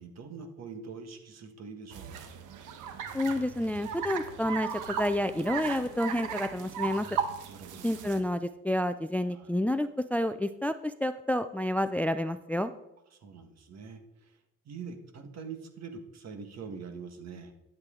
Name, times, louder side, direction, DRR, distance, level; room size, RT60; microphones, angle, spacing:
voice 1, 0.0-2.4 7.5-7.9 9.3-9.5 13.1-14.4 14.6-17.5, right 5 dB, 60° right, 7 dB, 1.6 m, -44 dB
sound 1, 1.9-8.2, right 7 dB, 85° right, 1.1 m, -37 dB
voice 2, 3.1-7.1 7.8-12.7, left 1 dB, 5° left, 12 dB, 0.4 m, -29 dB
12.0 x 7.8 x 3.8 m, 0.88 s
cardioid pair, 90°, 30 cm